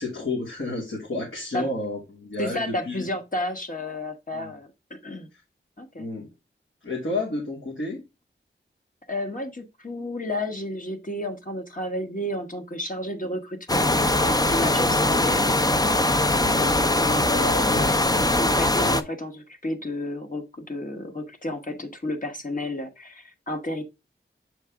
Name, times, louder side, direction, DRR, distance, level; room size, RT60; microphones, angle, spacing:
voice 1, 0.0-3.0 4.3-4.5 6.0-6.3 6.8-8.0 16.3-16.9 17.7-17.9, left 2 dB, 80° left, 2.6 m, -31 dB
voice 2, 2.4-5.3 5.8-6.1 9.1-13.9 14.2-15.6 16.9-18.0 18.3-23.8, left 1 dB, 40° left, 1.3 m, -32 dB
sound 1, 13.7-19.0, left 2 dB, 20° left, 0.6 m, -21 dB
6.9 x 4.5 x 3.6 m
wide cardioid pair, 55°, 20 cm